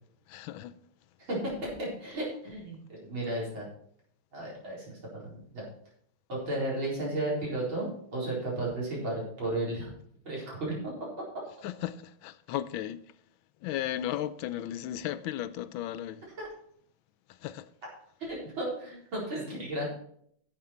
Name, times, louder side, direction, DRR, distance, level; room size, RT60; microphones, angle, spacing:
voice 1, 0.3-0.8 11.6-13.0 13.6-16.2 17.3-17.7, left 12 dB, 85° left, 1.4 m, -35 dB
voice 2, 1.3-3.7 4.3-5.6 6.3-9.9 10.2-11.1 16.4-16.5 18.2-19.9, right 1 dB, 90° right, 5.0 m, -34 dB
11.0 x 8.2 x 4.3 m
omnidirectional pair, 2.1 m